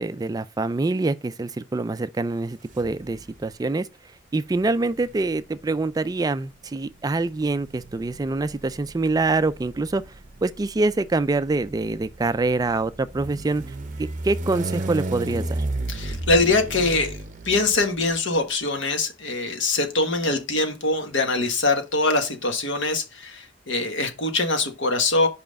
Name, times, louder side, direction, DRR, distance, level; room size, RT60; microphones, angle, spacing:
voice 1, 0.0-3.9 4.3-10.0 10.4-13.7 14.0-15.6, right 3 dB, 20° right, 0.3 m, -25 dB
sound 1, 2.7-3.4 4.5-18.2, right 2 dB, 45° right, 0.8 m, -34 dB
voice 2, 15.9-17.2 17.4-25.3, left 3 dB, 75° left, 1.4 m, -23 dB
5.5 x 5.0 x 5.1 m
head